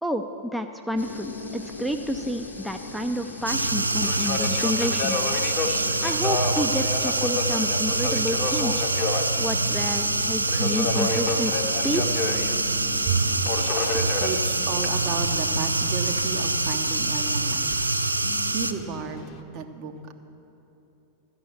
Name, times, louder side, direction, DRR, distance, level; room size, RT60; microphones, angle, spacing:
voice 1, 0.0-5.3 6.0-8.9 9.4-12.2, equal, ahead, 5 dB, 0.4 m, -30 dB
sound 1, 1.0-18.5, left 2 dB, 85° left, 0.7 m, -41 dB
Subway metro underground, 1.0-19.4, left 4 dB, 35° left, 0.7 m, -33 dB
sound 2, 3.5-18.7, right 2 dB, 80° right, 0.4 m, -25 dB
voice 2, 13.0-20.1, right 5 dB, 40° right, 6 dB, 0.8 m, -32 dB
12.5 x 5.6 x 9.2 m, 3.0 s
figure-of-eight pair, 90°, 0 cm